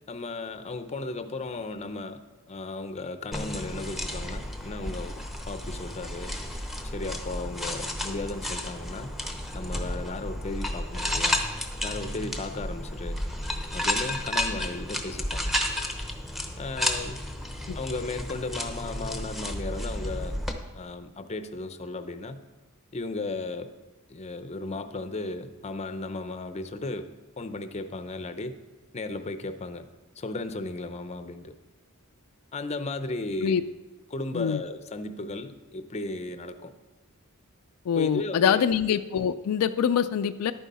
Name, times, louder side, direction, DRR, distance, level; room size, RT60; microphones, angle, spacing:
voice 1, 0.1-2.2 2.5-6.3 6.9-9.1 9.5-11.4 11.8-13.2 13.7-15.5 16.6-17.2 17.7-20.4 20.7-22.4 22.9-23.7 24.1-27.1 27.4-28.6 28.9-29.9 30.2-31.5 32.5-33.6 34.1-36.7 37.9-38.6, left 2 dB, 30° left, 10 dB, 0.6 m, -35 dB
sound 1, 3.3-20.5, left 1 dB, ahead, 0.8 m, -32 dB
voice 2, 37.9-40.5, left 8 dB, 75° left, 10 dB, 0.4 m, -24 dB
11.0 x 9.2 x 4.2 m, 1.1 s
head